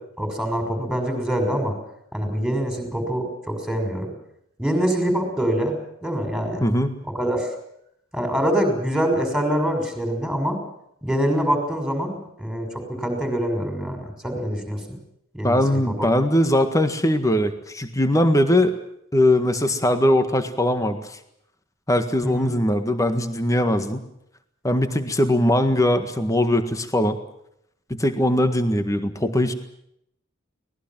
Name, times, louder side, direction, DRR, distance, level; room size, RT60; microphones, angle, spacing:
voice 1, 0.2-1.7 2.1-4.1 4.6-5.7 6.0-6.6 7.1-7.5 8.1-10.6 11.0-15.0 15.3-16.1 22.2-22.5 24.7-25.0, equal, ahead, 4 dB, 6.2 m, -25 dB
voice 2, 6.6-7.0 15.4-18.7 19.1-21.2 21.9-24.0 24.6-27.2 27.9-29.5, left 1 dB, 15° left, 8 dB, 1.7 m, -20 dB
24.5 x 19.0 x 7.5 m, 0.76 s
head